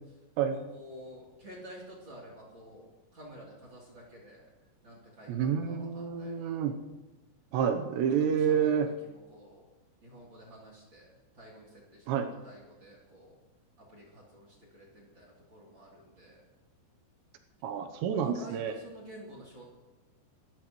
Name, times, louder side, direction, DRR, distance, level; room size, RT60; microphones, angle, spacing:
voice 1, 0.5-4.5 4.8-6.7 8.2-9.7 10.0-12.1 12.4-13.4 13.8-16.5 18.1-19.6, equal, 30° right, -4 dB, 3.2 m, -50 dB
voice 2, 5.3-6.8 7.5-8.9 12.1-12.3 17.6-18.7, right 7 dB, 80° right, 6 dB, 3.1 m, -28 dB
27.5 x 13.0 x 3.1 m, 1.1 s
omnidirectional pair, 5.0 m